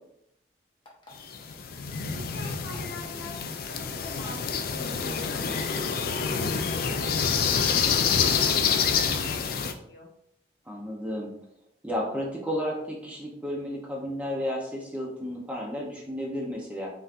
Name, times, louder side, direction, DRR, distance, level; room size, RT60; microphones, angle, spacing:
sound 1, 0.8-1.3 2.5-2.9 4.0-4.3 5.0-5.1 5.5-5.7 6.1-6.2 7.2-7.4 8.6-8.8, left 2 dB, 25° left, 0.8 m, -50 dB
sound 2, 1.2-9.7, left 6 dB, 50° left, 0.4 m, -27 dB
voice 1, 2.1-9.3 9.6-10.1, left 2 dB, 65° left, -1 dB, 1.0 m, -44 dB
voice 2, 10.7-11.3 11.8-16.9, equal, 5° right, -2 dB, 0.7 m, -32 dB
5.5 x 2.8 x 2.4 m, 0.74 s
head